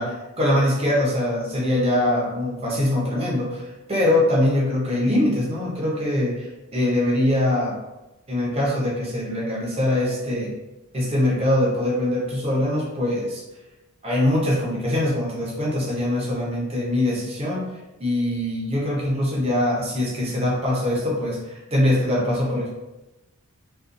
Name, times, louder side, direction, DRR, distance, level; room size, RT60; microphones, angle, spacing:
voice 1, 0.4-3.6 3.9-7.8 8.3-10.5 10.9-13.4 14.0-17.7 18.0-22.7, left 1 dB, 25° right, -4 dB, 0.6 m, -23 dB
2.5 x 2.3 x 2.5 m, 0.99 s
head